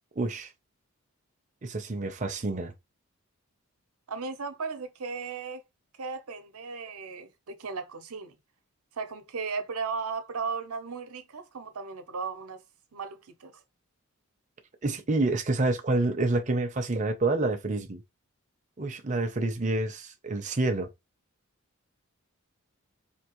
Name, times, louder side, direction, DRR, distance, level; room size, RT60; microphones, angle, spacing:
voice 1, 0.2-0.5 1.6-2.7 14.8-18.0 18.8-20.9, right 2 dB, 35° right, 0.6 m, -28 dB
voice 2, 4.1-5.6 6.0-8.4 8.9-12.6 12.9-13.5, right 5 dB, 85° right, 0.8 m, -36 dB
4.4 x 2.8 x 3.0 m
head